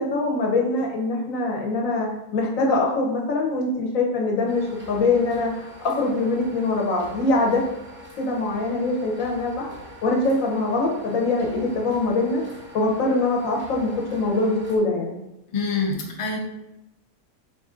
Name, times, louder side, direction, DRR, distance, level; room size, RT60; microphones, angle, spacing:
voice 1, 0.0-7.6 8.2-9.7 10.0-12.4 12.7-15.2, left 2 dB, 65° left, -1 dB, 1.2 m, -23 dB
sound 1, 4.5-14.8, equal, 10° right, 0.5 m, -44 dB
voice 2, 15.5-16.4, left 4 dB, 45° left, 0 dB, 0.4 m, -25 dB
4.6 x 2.6 x 3.6 m, 0.90 s
omnidirectional pair, 1.6 m